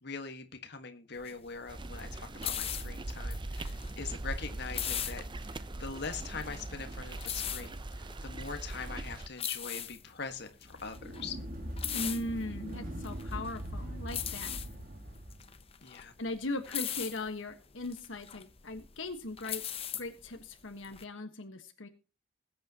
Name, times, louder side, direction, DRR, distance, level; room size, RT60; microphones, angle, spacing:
voice 1, 0.0-11.4 15.8-16.1, left 5 dB, 60° left, 6 dB, 1.6 m, -42 dB
sound 1, 1.2-21.0, left 10 dB, 30° left, 0.8 m, -40 dB
sound 2, 1.7-9.3, right 2 dB, 25° right, 0.6 m, -41 dB
sound 3, 10.6-15.5, equal, 45° right, 2.0 m, -41 dB
voice 2, 11.9-14.6 16.2-19.6 19.9-21.9, left 2 dB, 75° left, 6 dB, 1.4 m, -39 dB
20.5 x 8.7 x 2.9 m, 0.32 s
head